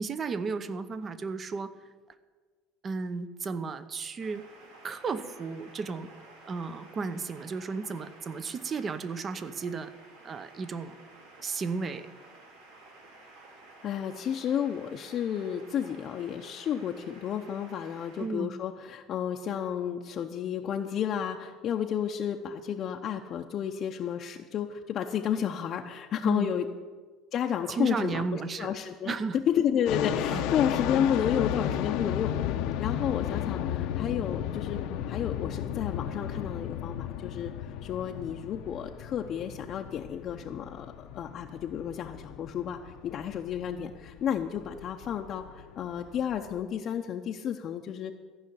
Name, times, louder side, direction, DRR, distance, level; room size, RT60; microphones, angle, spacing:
voice 1, 0.0-1.7 2.8-4.4 4.8-6.1 6.5-9.9 10.2-10.9 11.4-12.1 18.2-18.5 26.2-26.5 27.7-28.7 29.1-29.4 30.3-30.5, right 4 dB, 30° right, 13 dB, 0.7 m, -34 dB
sound 1, 4.2-18.3, right 2 dB, 90° right, 2.6 m, -53 dB
voice 2, 13.8-26.7 27.3-32.3 32.8-34.8 35.1-48.1, left 9 dB, 45° left, 2 dB, 0.7 m, -31 dB
sound 2, 29.9-46.6, left 10 dB, 70° left, 0.8 m, -34 dB
14.5 x 5.7 x 9.5 m, 1.5 s
cardioid pair, 125°, 0 cm